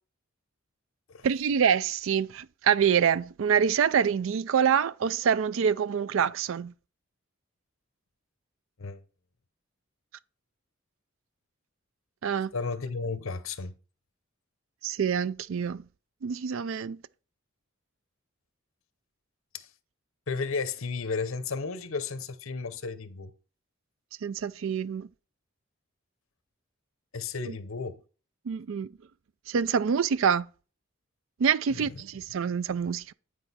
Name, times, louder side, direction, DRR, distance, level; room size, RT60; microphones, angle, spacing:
voice 1, 1.2-6.7 12.2-12.5 14.8-15.8 16.2-17.0 24.2-25.1 27.5-27.6 28.5-28.9 29.5-30.5 31.4-33.1, right 7 dB, 70° right, 0.4 m, -26 dB
voice 2, 12.5-13.7 19.5-19.7 20.3-23.3 27.1-28.0 31.7-32.0, left 4 dB, 75° left, 0.8 m, -33 dB
10.0 x 4.7 x 4.1 m
head